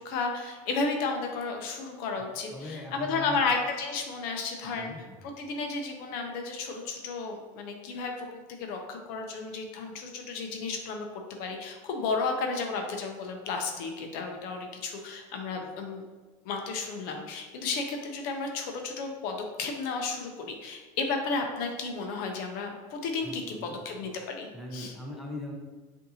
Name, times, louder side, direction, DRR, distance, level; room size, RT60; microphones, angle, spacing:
voice 1, 0.0-4.9 5.2-8.3 8.6-11.1 11.4-16.0 16.4-24.9, left 4 dB, 60° left, 3 dB, 0.6 m, -33 dB
voice 2, 2.2-3.4 4.6-5.2 23.2-23.8 24.5-25.5, left 1 dB, ahead, -2 dB, 0.7 m, -41 dB
5.2 x 2.7 x 2.7 m, 1.3 s
supercardioid pair, 115°, 17 cm